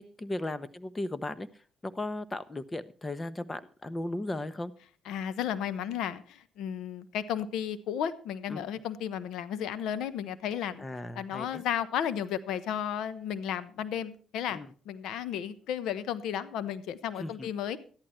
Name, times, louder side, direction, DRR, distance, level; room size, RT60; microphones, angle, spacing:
voice 1, 0.0-1.5 1.8-4.7 8.5-8.6 10.8-11.6 14.5-14.7 17.2-17.5, left 2 dB, 20° left, 15 dB, 1.0 m, -36 dB
voice 2, 5.1-10.9 11.1-14.6 14.8-17.8, left 9 dB, 85° left, 15 dB, 1.0 m, -33 dB
13.5 x 11.5 x 4.4 m, 0.42 s
cardioid pair, 90°, 0 cm